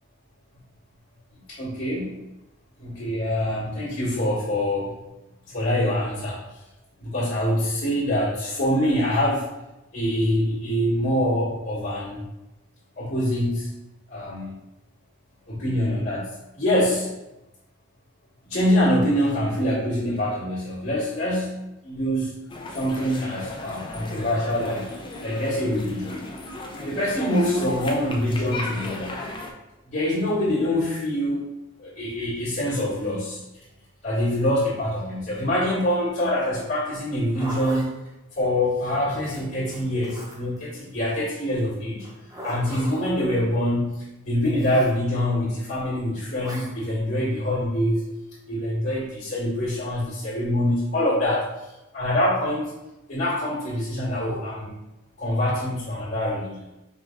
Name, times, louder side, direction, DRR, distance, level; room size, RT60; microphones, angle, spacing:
voice 1, 1.5-2.2 2.8-5.0 5.5-6.4 7.0-9.5 9.9-12.2 13.0-13.7 14.1-14.5 15.5-16.3 16.6-17.1 18.4-22.3 22.7-24.9 25.2-26.2 26.8-29.2 29.9-31.4 31.8-33.4 34.0-37.9 38.3-42.1 42.4-44.0 44.2-48.1 48.5-51.4 51.9-52.7 53.1-54.7 55.2-56.6, left 1 dB, 50° left, -9 dB, 1.6 m, -25 dB
sound 1, 22.5-29.5, left 2 dB, 20° left, 0.4 m, -36 dB
Zipper (clothing), 37.1-37.9 39.2-40.6 42.0-43.1 44.5-44.9 46.4-46.7, equal, 15° right, 0.8 m, -39 dB
5.1 x 2.7 x 3.6 m, 0.95 s
head